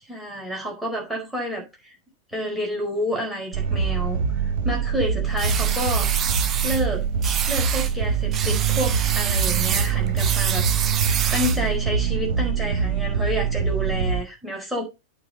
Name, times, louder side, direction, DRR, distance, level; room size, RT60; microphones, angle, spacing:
voice 1, 0.0-2.0 2.3-6.1 6.6-7.0 7.5-14.8, equal, ahead, 4.6 m, -29 dB
sound 1, 3.5-14.2, right 6 dB, 50° right, 1.4 m, -24 dB
sound 2, 5.4-6.8 7.2-7.9 8.3-11.7, right 8 dB, 25° right, 1.1 m, -27 dB
8.6 x 4.9 x 6.7 m
figure-of-eight pair, 90°, 0 cm